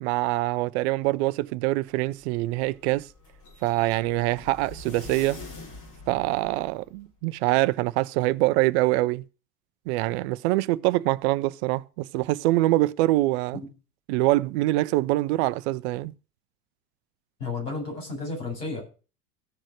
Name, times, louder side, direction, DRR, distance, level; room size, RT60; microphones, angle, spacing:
voice 1, 0.0-3.1 3.6-5.4 6.1-9.2 9.9-13.6 14.1-16.1, right 18 dB, 45° right, 0.6 m, -24 dB
sound 1, 2.0-7.0, left 2 dB, 40° left, 4.2 m, -45 dB
voice 2, 17.4-18.8, left 3 dB, 80° left, 7.6 m, -32 dB
15.0 x 6.3 x 6.4 m
figure-of-eight pair, 80°, 46 cm